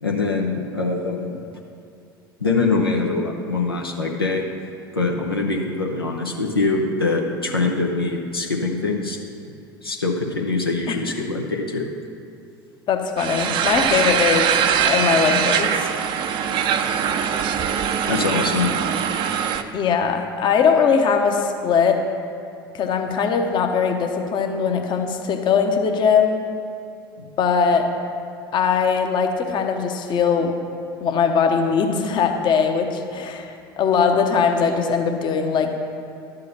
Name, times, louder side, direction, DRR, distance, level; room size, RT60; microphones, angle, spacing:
voice 1, 0.0-1.3 2.4-4.4 4.9-9.2 9.8-11.9 18.1-18.7 27.2-27.3, left 3 dB, 90° left, 0 dB, 0.7 m, -23 dB
voice 2, 12.9-14.5 14.8-16.0 19.7-22.0 22.7-26.4 27.4-27.9 28.5-30.5 31.0-35.7, left 6 dB, 40° left, 4 dB, 0.9 m, -20 dB
sound 1, 13.2-19.6, right 8 dB, 45° right, 0.5 m, -22 dB
11.0 x 3.9 x 6.5 m, 2.5 s
figure-of-eight pair, 70°, 12 cm